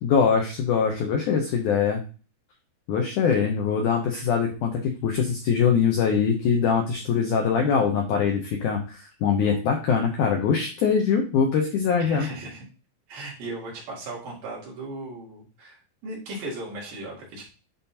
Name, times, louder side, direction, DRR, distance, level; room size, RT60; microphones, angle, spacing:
voice 1, 0.0-2.0 2.9-12.3, left 6 dB, 90° left, 3 dB, 1.7 m, -23 dB
voice 2, 12.0-12.7 13.1-17.4, right 2 dB, 60° right, -4 dB, 4.0 m, -37 dB
11.0 x 3.8 x 2.8 m, 0.35 s
omnidirectional pair, 4.7 m